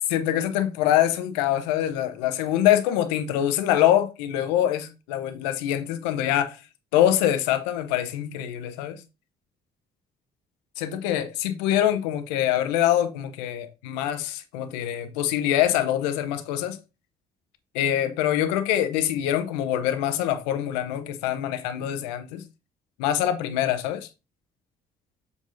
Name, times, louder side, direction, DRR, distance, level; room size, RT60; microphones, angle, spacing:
voice 1, 0.1-6.6 6.9-9.0 10.8-16.8 17.7-22.4 23.0-24.1, left 11 dB, 85° left, 0.9 m, -24 dB
7.4 x 5.3 x 2.7 m
hypercardioid pair, 55°, 21 cm